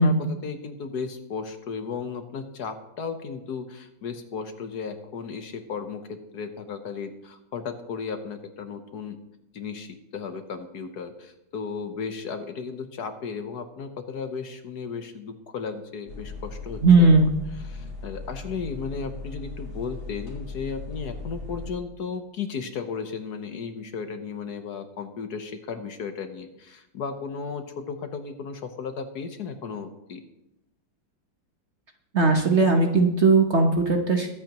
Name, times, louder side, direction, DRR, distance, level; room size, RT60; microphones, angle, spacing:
voice 1, 0.0-9.2 9.5-17.2 17.7-30.2, left 5 dB, 60° left, 7 dB, 1.4 m, -35 dB
sound 1, 16.1-21.7, left 3 dB, 80° left, 3.3 m, -38 dB
voice 2, 16.8-17.3 32.1-34.3, right 3 dB, 45° right, 3 dB, 1.1 m, -18 dB
22.5 x 8.4 x 3.0 m, 0.88 s
omnidirectional pair, 2.1 m